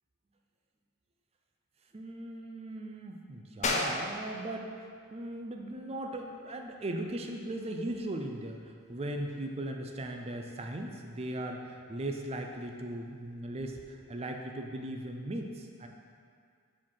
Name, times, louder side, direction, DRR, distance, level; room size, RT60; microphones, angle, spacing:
voice 1, 1.9-15.9, right 1 dB, 30° right, 3 dB, 0.5 m, -38 dB
sound 1, 3.6-13.9, left 3 dB, 30° left, 0.5 m, -41 dB
5.0 x 4.5 x 5.5 m, 2.2 s
head